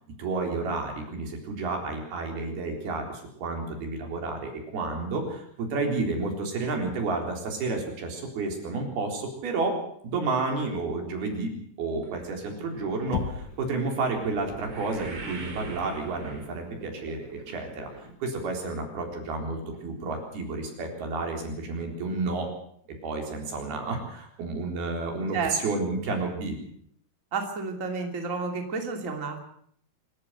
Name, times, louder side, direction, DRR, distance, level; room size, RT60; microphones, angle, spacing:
voice 1, 0.2-11.5 11.8-17.9 18.2-22.5 23.0-26.6, right 3 dB, 80° right, 2 dB, 5.9 m, -31 dB
sound 1, 12.0-18.4 18.7-19.2 19.7-19.8 20.1-20.2, right 3 dB, 40° right, 3.9 m, -42 dB
Knock, 13.1-13.8, left 9 dB, 70° left, 2.5 m, -32 dB
voice 2, 27.3-29.4, right 4 dB, 25° right, 4 dB, 2.6 m, -31 dB
25.5 x 13.5 x 8.0 m, 0.66 s
omnidirectional pair, 4.4 m